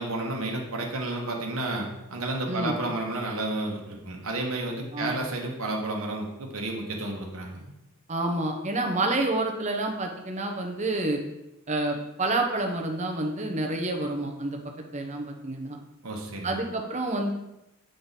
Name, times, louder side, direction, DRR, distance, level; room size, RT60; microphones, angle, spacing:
voice 1, 0.0-7.7 16.0-16.6, right 2 dB, 65° right, 0 dB, 1.2 m, -31 dB
voice 2, 8.1-11.2 11.7-14.6 14.9-15.8 16.4-17.3, right 2 dB, 30° right, 3 dB, 0.8 m, -28 dB
7.9 x 3.8 x 4.0 m, 0.92 s
head